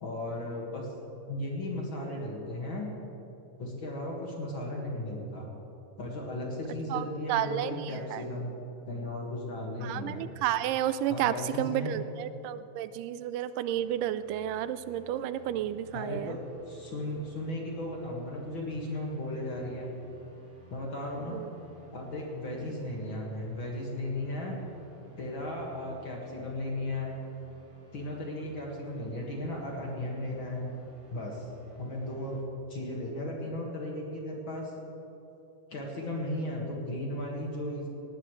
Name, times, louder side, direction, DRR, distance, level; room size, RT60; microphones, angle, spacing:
voice 1, 0.0-0.9 1.3-2.9 3.6-5.5 6.0-8.5 8.9-10.2 11.1-11.9 15.9-16.4 16.7-19.9 20.7-21.4 21.9-24.6 25.2-27.2 27.9-30.7 31.1-31.5 31.8-32.4 32.7-34.7 35.7-37.9, left 1 dB, 45° left, -2 dB, 2.2 m, -35 dB
voice 2, 6.9-8.2 9.8-16.4 21.3-21.5, right 11 dB, 85° right, 13 dB, 2.1 m, -32 dB
sound 1, 13.7-32.4, right 1 dB, 40° right, 1.5 m, -55 dB
18.5 x 18.0 x 3.2 m, 3.0 s
omnidirectional pair, 3.7 m